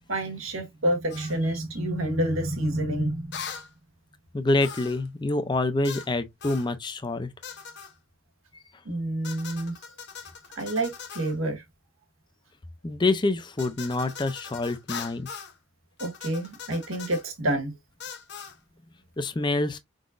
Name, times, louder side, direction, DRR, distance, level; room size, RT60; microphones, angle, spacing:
voice 1, 0.1-3.4 8.8-9.7 10.5-11.6 16.0-17.7, right 1 dB, 85° right, 1.7 m, -28 dB
sound 1, 1.1-1.4 3.3-3.7 4.6-5.1 5.8-6.1 6.4-6.7 7.4-7.9 9.2-11.4 13.6-15.5 16.0-17.2 18.0-18.6, left 6 dB, 55° left, 0.8 m, -40 dB
voice 2, 4.3-7.3 12.8-15.3 19.2-19.8, left 2 dB, 20° left, 0.5 m, -26 dB
5.0 x 3.8 x 2.4 m
head